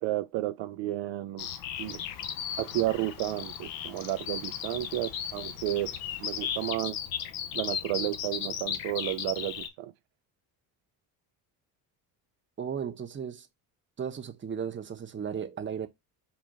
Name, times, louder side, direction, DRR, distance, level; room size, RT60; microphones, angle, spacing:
voice 1, 0.0-1.5 1.8-2.0 2.6-7.0 7.5-9.9, right 15 dB, 75° right, 0.5 m, -32 dB
Bird vocalization bird call bird song, 1.4-9.7, left 8 dB, 80° left, 0.9 m, -36 dB
Thunder / Rain, 1.7-6.7, left 5 dB, 50° left, 1.6 m, -55 dB
voice 2, 12.6-13.5 14.0-15.9, right 7 dB, 25° right, 0.8 m, -35 dB
4.0 x 2.7 x 4.7 m
supercardioid pair, 80°, 44 cm